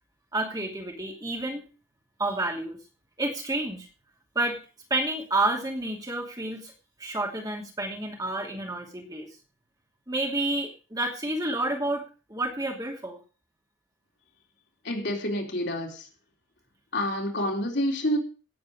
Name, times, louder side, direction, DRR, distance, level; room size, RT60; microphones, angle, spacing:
voice 1, 0.3-1.6 2.2-2.8 3.2-3.9 4.3-4.6 4.9-6.7 7.0-9.3 10.1-13.2, right 2 dB, 20° right, 1 dB, 2.6 m, -29 dB
voice 2, 14.8-16.1 16.9-18.2, equal, 55° left, 0 dB, 3.7 m, -28 dB
17.5 x 7.9 x 4.9 m, 0.35 s
head